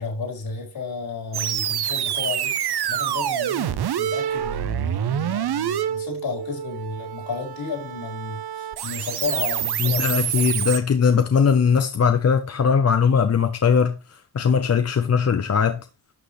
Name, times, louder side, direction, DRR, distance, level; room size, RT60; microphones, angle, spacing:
voice 1, 0.0-10.7, left 4 dB, 70° left, 4.5 m, -32 dB
sound 1, 1.3-10.8, right 10 dB, 75° right, 0.9 m, -27 dB
voice 2, 9.8-14.0 14.3-15.8, left 6 dB, 40° left, 0.8 m, -19 dB
11.5 x 6.3 x 3.2 m
wide cardioid pair, 135°, 39 cm